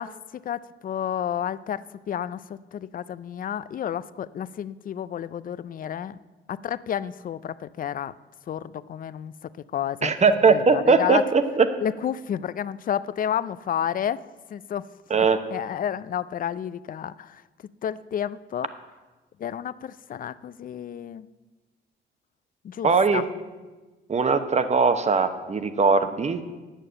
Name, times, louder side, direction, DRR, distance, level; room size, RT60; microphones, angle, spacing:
voice 1, 0.0-6.2 6.5-8.1 8.5-9.3 9.7-10.1 10.5-11.2 11.8-14.2 14.5-17.4 17.8-18.7 19.4-21.3 22.6-23.3, left 9 dB, 45° left, 17 dB, 0.4 m, -31 dB
voice 2, 10.0-11.7 15.1-15.4 22.8-23.2 24.1-26.4, right 4 dB, 35° right, 10 dB, 0.9 m, -20 dB
9.0 x 6.7 x 7.7 m, 1.3 s
cardioid pair, 90°, 20 cm